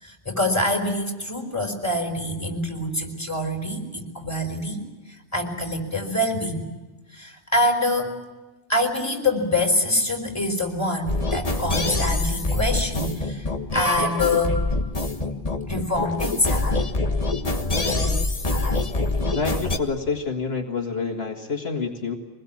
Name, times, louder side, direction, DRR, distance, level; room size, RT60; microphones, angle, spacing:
voice 1, 0.0-6.7 7.1-8.1 8.7-14.6 15.7-16.7, left 1 dB, 15° left, 4 dB, 5.0 m, -25 dB
sound 1, 11.1-19.8, left 2 dB, 35° left, 1.6 m, -25 dB
voice 2, 19.3-22.1, left 4 dB, 70° left, 2 dB, 2.2 m, -27 dB
24.5 x 20.5 x 8.7 m, 1.2 s
omnidirectional pair, 1.1 m